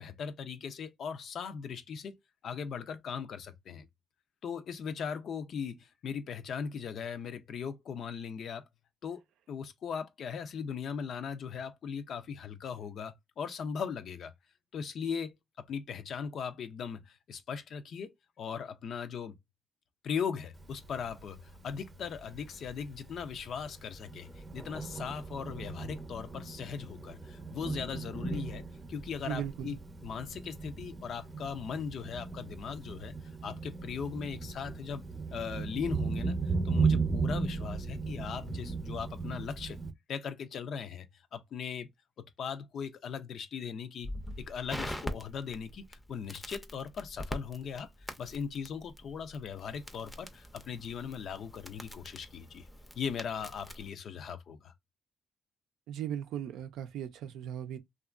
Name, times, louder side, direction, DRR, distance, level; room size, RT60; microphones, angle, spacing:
voice 1, 0.0-2.2 2.4-3.9 4.4-8.6 9.0-9.2 9.5-14.3 14.7-18.1 18.4-19.3 20.0-28.6 28.9-29.8 30.0-33.1 33.4-35.0 35.3-36.4 36.6-39.8 40.1-41.1 41.3-41.9 42.4-44.1 44.4-47.9 48.2-52.7 52.9-54.7, left 6 dB, 65° left, 0.4 m, -39 dB
Thunder, 20.6-39.9, right 4 dB, 25° right, 0.7 m, -37 dB
voice 2, 29.2-29.8 55.9-57.8, right 10 dB, 85° right, 0.4 m, -37 dB
Crackle, 44.0-53.9, equal, 10° left, 0.5 m, -44 dB
2.8 x 2.3 x 2.4 m
cardioid pair, 90°, 0 cm